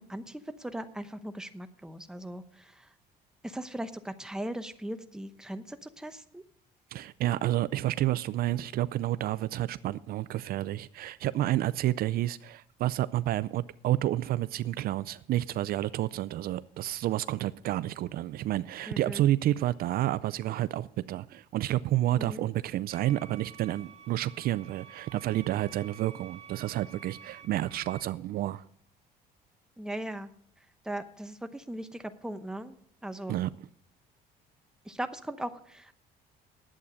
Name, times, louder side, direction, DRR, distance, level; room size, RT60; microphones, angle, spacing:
voice 1, 0.0-2.8 3.4-6.4 18.9-19.3 22.1-22.4 29.8-30.3 30.8-32.8 33.0-33.4 34.9-36.0, right 1 dB, 5° right, 0.8 m, -39 dB
voice 2, 6.9-28.6 33.3-33.5, right 14 dB, 65° right, 0.4 m, -30 dB
sound 1, 22.9-28.0, right 7 dB, 40° right, 1.9 m, -50 dB
11.0 x 8.5 x 6.3 m
cardioid pair, 110°, 17 cm